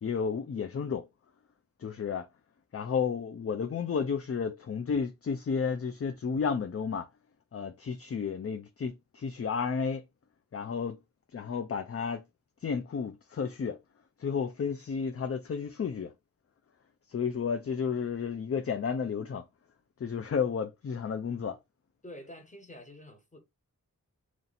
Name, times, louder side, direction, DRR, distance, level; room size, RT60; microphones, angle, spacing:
voice 1, 0.0-1.1 1.8-2.3 2.7-7.1 7.5-10.0 10.5-11.0 11.3-12.2 12.6-13.8 14.2-16.1 17.1-19.4 20.0-21.6, left 6 dB, 40° left, 0.5 m, -32 dB
voice 2, 22.0-23.4, left 1 dB, 20° left, 1.4 m, -47 dB
3.1 x 2.7 x 4.1 m
cardioid pair, 40°, 35 cm